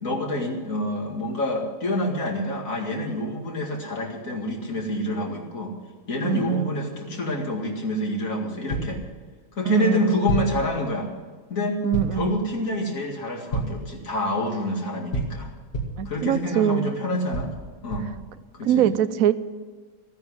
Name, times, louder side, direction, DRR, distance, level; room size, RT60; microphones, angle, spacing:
voice 1, 0.0-5.7 6.1-9.0 9.5-11.1 11.5-11.8 12.1-15.5 16.1-17.5 17.8-18.1 18.5-18.9, left 1 dB, 70° left, 1 dB, 2.7 m, -27 dB
voice 2, 6.2-6.7 9.7-10.2 11.8-12.4 16.0-16.9 18.6-19.3, right 10 dB, 80° right, 14 dB, 1.1 m, -23 dB
sound 1, 8.7-9.0 10.3-10.6 11.9-12.3 13.5-13.9 15.1-16.1 17.3-18.2, right 1 dB, 45° left, 2.1 m, -29 dB
14.5 x 9.5 x 8.0 m, 1.4 s
omnidirectional pair, 1.5 m